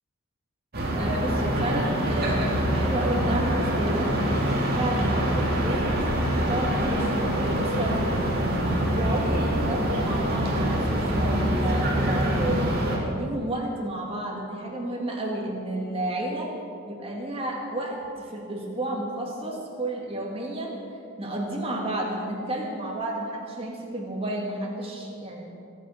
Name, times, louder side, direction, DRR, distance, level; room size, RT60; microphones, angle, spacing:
sound 1, 0.7-13.0, equal, 45° right, 2.4 m, -25 dB
voice 1, 1.0-4.1 4.7-5.9 6.3-8.1 8.9-16.5 16.9-20.7 21.2-25.5, right 1 dB, 25° right, -2 dB, 2.3 m, -31 dB
22.5 x 8.2 x 5.8 m, 2.5 s
head